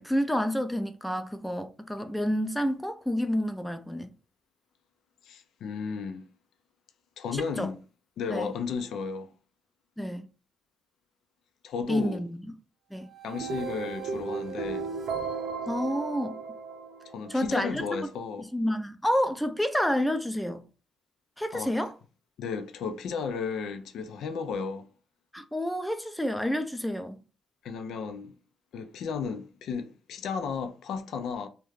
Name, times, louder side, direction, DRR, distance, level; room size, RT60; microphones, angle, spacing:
voice 1, 0.0-4.1 7.3-7.7 8.3-8.5 10.0-10.3 11.9-12.4 12.9-13.1 15.7-16.4 17.3-17.8 18.5-20.6 21.4-21.9 25.3-27.2, equal, 5° left, 0.4 m, -29 dB
voice 2, 5.2-6.2 7.2-7.8 8.2-9.3 11.6-12.2 13.2-14.9 17.1-18.5 21.5-21.7 22.4-24.9 27.6-28.3 28.7-31.5, left 5 dB, 75° left, 0.4 m, -34 dB
sound 1, 13.1-17.4, right 5 dB, 70° right, 0.7 m, -35 dB
2.4 x 2.1 x 3.1 m
cardioid pair, 80°, 0 cm